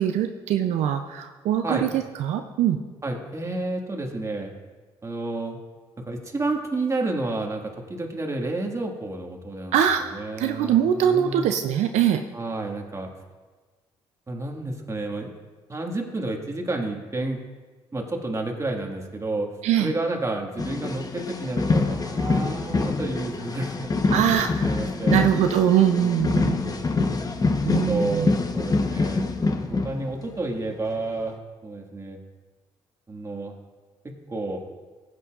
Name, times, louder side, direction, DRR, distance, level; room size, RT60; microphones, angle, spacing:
voice 1, 0.0-1.9 2.2-2.8 9.7-10.0 10.4-12.2 19.6-19.9 24.1-24.7 25.1-26.6 27.6-28.3, right 9 dB, 75° right, 6 dB, 0.5 m, -22 dB
voice 2, 3.0-4.5 5.0-5.6 6.0-9.8 10.1-11.5 12.3-13.1 14.3-15.3 15.7-17.4 17.9-19.5 19.8-24.3 24.6-25.3 26.0-26.8 27.7-29.3 29.8-32.2 33.1-33.6 34.0-34.6, right 2 dB, 25° right, 2 dB, 1.8 m, -30 dB
sound 1, 20.6-30.5 31.0-31.2, left 3 dB, 30° left, 1.0 m, -25 dB
15.5 x 8.4 x 2.5 m, 1.4 s
supercardioid pair, 65°, 12 cm